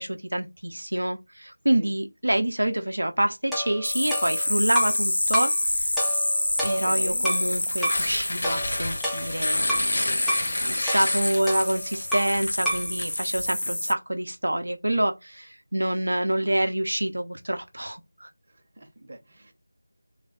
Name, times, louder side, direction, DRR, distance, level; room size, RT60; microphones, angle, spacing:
voice 1, 0.0-5.9 6.6-10.2 10.6-18.3, right 1 dB, 75° right, 0.7 m, -27 dB
sound 1, 3.5-5.0 5.3-5.6 6.0-7.5 7.8-8.1 8.4-9.9 10.3-10.5 10.9-12.4 12.6-12.9, equal, ahead, 0.5 m, -31 dB
sound 2, 3.8-13.9, left 1 dB, 65° left, 0.5 m, -27 dB
voice 2, 6.7-7.3 10.3-11.1 18.5-19.5, right 1 dB, 35° right, 0.9 m, -44 dB
Tearing, 7.4-13.7, left 2 dB, 40° left, 1.1 m, -33 dB
3.3 x 2.3 x 3.8 m
figure-of-eight pair, 170°, 0 cm